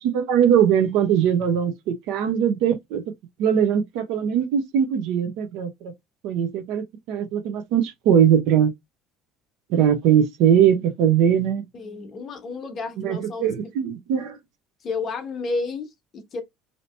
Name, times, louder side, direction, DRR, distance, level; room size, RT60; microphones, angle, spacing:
voice 1, 0.0-3.0 3.4-5.9 6.2-8.7 9.7-11.7 13.0-14.4, right 9 dB, 65° right, 0.7 m, -21 dB
voice 2, 11.7-13.5 14.8-16.4, left 3 dB, 30° left, 0.9 m, -31 dB
2.8 x 2.8 x 3.2 m
cardioid pair, 155°, 0 cm